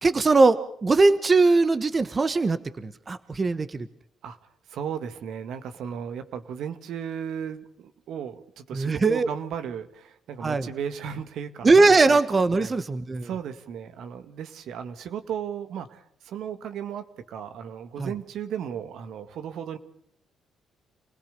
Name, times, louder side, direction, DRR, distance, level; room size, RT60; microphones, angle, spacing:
voice 1, 0.0-3.9 8.7-9.3 10.4-10.7 11.6-13.3 18.0-18.1, right 3 dB, 30° right, 13 dB, 1.3 m, -20 dB
voice 2, 4.7-11.7 12.1-12.2 12.6-12.8 13.2-19.8, right 8 dB, 75° right, 9 dB, 2.1 m, -35 dB
28.5 x 18.0 x 6.9 m, 0.68 s
cardioid pair, 90°, 0 cm